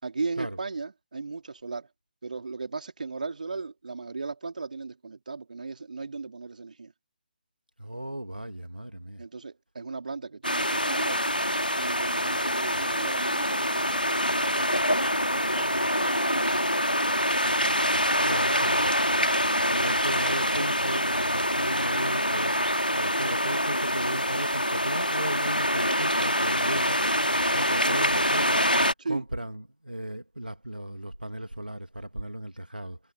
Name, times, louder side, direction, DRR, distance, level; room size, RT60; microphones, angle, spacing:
voice 1, 0.0-1.9 2.2-6.9 9.2-11.3 11.8-17.4 29.0-29.2, right 4 dB, 60° right, 3.4 m, -37 dB
voice 2, 7.8-9.2 18.2-18.9 19.7-22.5 22.9-28.7 29.0-33.0, right 1 dB, 85° right, 2.7 m, -36 dB
sound 1, 10.4-28.9, equal, 90° left, 2.6 m, -25 dB
figure-of-eight pair, 140°, 5 cm